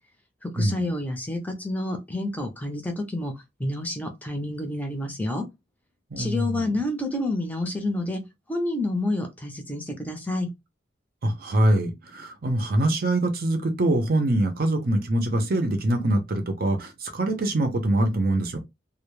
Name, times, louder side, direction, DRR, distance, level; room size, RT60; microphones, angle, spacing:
voice 1, 0.4-3.3 3.6-5.4 6.2-8.2 8.5-10.5, left 1 dB, 10° left, 0.5 m, -29 dB
voice 2, 6.1-6.7 11.2-18.6, right 1 dB, 50° right, 0.6 m, -24 dB
2.2 x 2.0 x 3.0 m
head